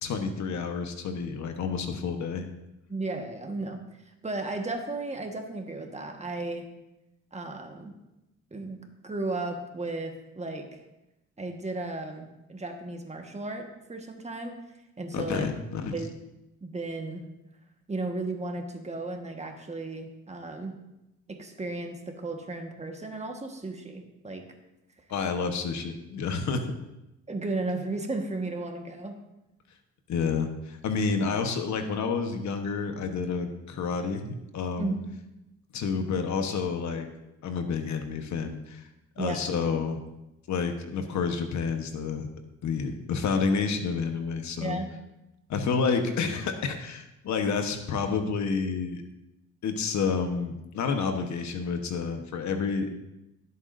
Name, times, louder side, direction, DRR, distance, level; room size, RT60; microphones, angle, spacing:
voice 1, 0.0-2.5 15.1-16.0 25.1-26.6 30.1-35.0 35.7-37.1 37.4-38.8 39.2-40.0 40.5-42.3 42.6-44.8 45.5-49.0 49.6-52.9, left 5 dB, 65° left, 6 dB, 1.2 m, -29 dB
voice 2, 2.9-3.8 4.1-6.6 7.3-7.9 8.5-10.8 11.4-14.6 15.0-15.5 15.9-16.1 16.6-17.2 17.9-20.8 21.3-24.4 27.3-29.2 34.8-34.9 39.2-39.4 44.6-44.9, right 2 dB, 20° right, 3 dB, 1.5 m, -34 dB
16.5 x 8.2 x 2.6 m, 0.94 s
cardioid pair, 90°, 30 cm